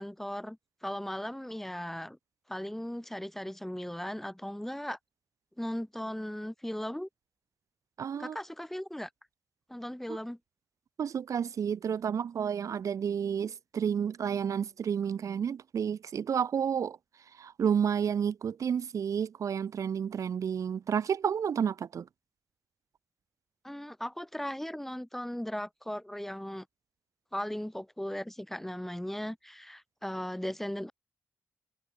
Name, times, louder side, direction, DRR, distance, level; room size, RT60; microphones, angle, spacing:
voice 1, 0.0-2.2 2.5-5.0 5.6-7.1 8.2-9.1 9.7-10.4 23.6-26.6 27.3-30.9, equal, 5° left, 4.5 m, -37 dB
voice 2, 8.0-8.4 10.1-10.2 11.0-17.0 17.4-22.0, right 7 dB, 70° right, 2.8 m, -31 dB
cardioid pair, 65°, 6 cm